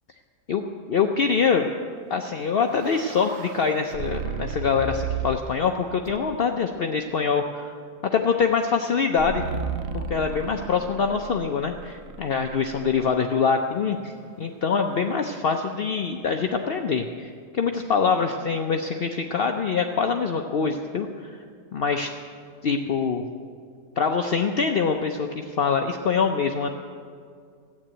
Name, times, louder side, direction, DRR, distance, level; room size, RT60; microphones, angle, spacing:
voice 1, 0.9-1.7 2.1-7.7 8.0-9.4 9.9-21.4 21.7-22.1 22.6-23.2 24.0-26.7, left 5 dB, 65° left, 4 dB, 0.5 m, -24 dB
sound 1, 2.3-5.6 6.1-6.6 9.2-13.3, right 5 dB, 70° right, 0.6 m, -34 dB
14.0 x 8.6 x 8.8 m, 2.2 s
omnidirectional pair, 1.8 m